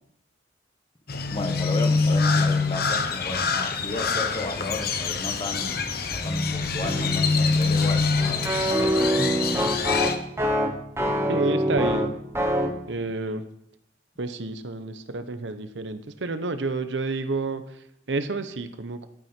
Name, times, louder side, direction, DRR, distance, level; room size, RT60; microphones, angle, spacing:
Crow, 1.1-10.2, left 4 dB, 60° left, 1.0 m, -25 dB
voice 1, 1.3-9.8, left 2 dB, 30° left, 6 dB, 1.4 m, -34 dB
sound 1, 6.8-12.8, equal, 15° right, 1.2 m, -25 dB
voice 2, 11.3-12.1 12.9-13.4 14.2-19.1, right 3 dB, 85° right, 10 dB, 0.9 m, -30 dB
12.0 x 9.3 x 4.5 m, 0.76 s
head